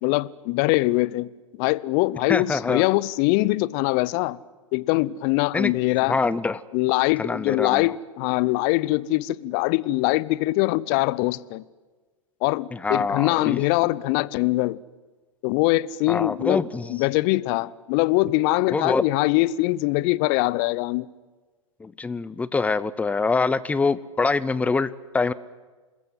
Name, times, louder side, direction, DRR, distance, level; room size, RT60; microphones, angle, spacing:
voice 1, 0.0-1.3 1.6-4.4 4.7-6.2 6.7-11.6 12.4-14.8 15.4-16.6 16.9-21.1, left 19 dB, 40° left, 0.7 m, -23 dB
voice 2, 2.3-2.8 5.5-5.7 6.1-6.6 7.2-7.9 12.7-13.6 16.1-16.9 18.7-19.0 21.8-24.9 25.1-25.3, left 4 dB, 10° left, 0.8 m, -24 dB
28.0 x 21.0 x 7.8 m
figure-of-eight pair, 105°, 17 cm